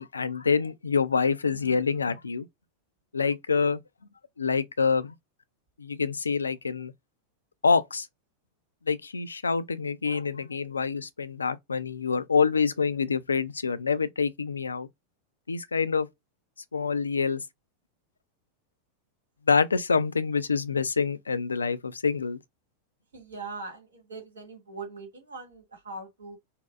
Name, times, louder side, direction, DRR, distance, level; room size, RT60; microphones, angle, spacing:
voice 1, 0.0-2.5 3.1-3.8 4.4-5.1 5.8-6.9 7.6-8.1 8.9-14.9 15.5-16.1 16.7-17.4 19.5-22.4, left 5 dB, 75° left, 0.3 m, -26 dB
voice 2, 23.1-26.4, right 3 dB, 70° right, 1.6 m, -41 dB
4.1 x 2.0 x 2.4 m
figure-of-eight pair, 90°, 0 cm